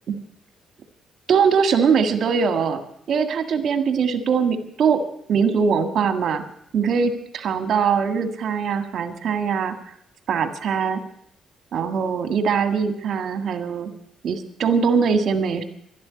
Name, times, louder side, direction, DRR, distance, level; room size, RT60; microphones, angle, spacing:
voice 1, 1.3-2.8 3.1-5.0 5.3-6.4 6.7-9.7 10.3-11.0 11.7-13.9 14.2-15.6, right 6 dB, 65° right, 8 dB, 1.8 m, -21 dB
12.0 x 12.0 x 9.6 m, 0.74 s
cardioid pair, 90°, 0 cm